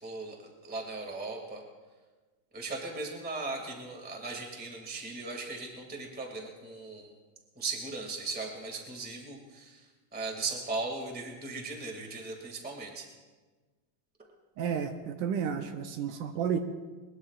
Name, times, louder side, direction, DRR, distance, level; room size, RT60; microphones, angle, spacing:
voice 1, 0.0-1.6 2.5-7.1 7.5-9.8 10.1-13.0, right 3 dB, 5° right, 1 dB, 1.2 m, -38 dB
voice 2, 14.6-16.6, right 7 dB, 80° right, 7 dB, 2.2 m, -31 dB
21.0 x 21.0 x 2.4 m, 1.3 s
omnidirectional pair, 3.9 m